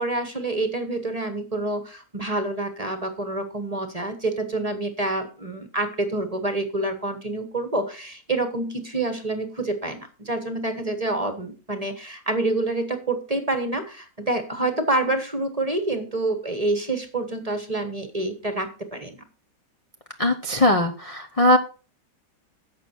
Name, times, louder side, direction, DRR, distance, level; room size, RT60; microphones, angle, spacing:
voice 1, 0.0-19.3, right 2 dB, 25° right, 7 dB, 1.1 m, -27 dB
voice 2, 20.2-21.6, left 1 dB, 30° left, 4 dB, 0.7 m, -20 dB
11.5 x 7.4 x 4.4 m, 0.37 s
omnidirectional pair, 1.9 m